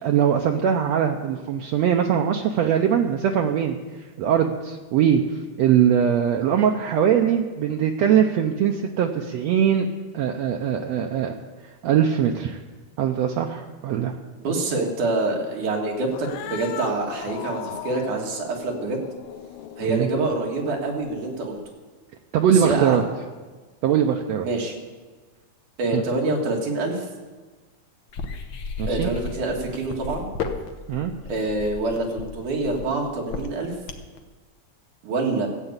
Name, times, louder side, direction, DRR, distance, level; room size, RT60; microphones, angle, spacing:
voice 1, 0.0-3.8 4.2-9.9 10.1-11.3 11.8-12.6 13.0-14.2 19.9-20.1 22.3-23.0 23.8-24.5 25.9-26.0 28.8-29.1 30.9-31.1, right 8 dB, 70° right, 3 dB, 1.8 m, -21 dB
voice 2, 14.4-19.0 19.8-21.6 22.5-23.0 24.4-24.7 25.8-27.1 28.9-30.3 31.3-33.7 35.0-35.5, right 3 dB, 90° right, 0 dB, 3.6 m, -26 dB
Cat, 16.1-21.7, left 11 dB, 80° left, 2.0 m, -38 dB
sound 1, 28.1-34.2, left 5 dB, 60° left, 1.3 m, -33 dB
14.5 x 8.3 x 8.1 m, 1.3 s
omnidirectional pair, 3.4 m